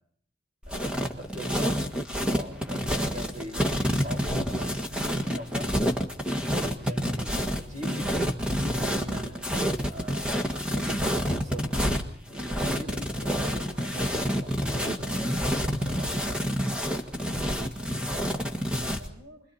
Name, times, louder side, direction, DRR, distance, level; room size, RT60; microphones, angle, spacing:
sound 1, 0.6-19.1, equal, 5° right, 1.7 m, -28 dB
voice 1, 0.7-1.8 2.3-5.7 6.4-8.0 8.9-9.4 9.9-11.8 12.3-16.4, equal, 35° right, 2 dB, 6.8 m, -42 dB
voice 2, 2.8-3.3 17.8-19.4, right 1 dB, 55° right, -1 dB, 6.4 m, -52 dB
29.5 x 22.5 x 4.3 m, 0.65 s
head